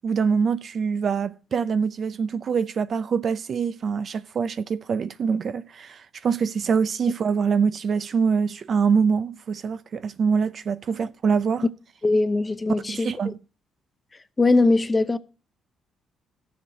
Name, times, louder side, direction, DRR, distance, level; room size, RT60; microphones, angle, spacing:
voice 1, 0.0-11.7 12.9-13.4, right 6 dB, 55° right, 0.5 m, -24 dB
voice 2, 12.0-13.1 14.4-15.2, left 3 dB, 25° left, 0.6 m, -20 dB
17.5 x 7.2 x 2.8 m
cardioid pair, 90°, 0 cm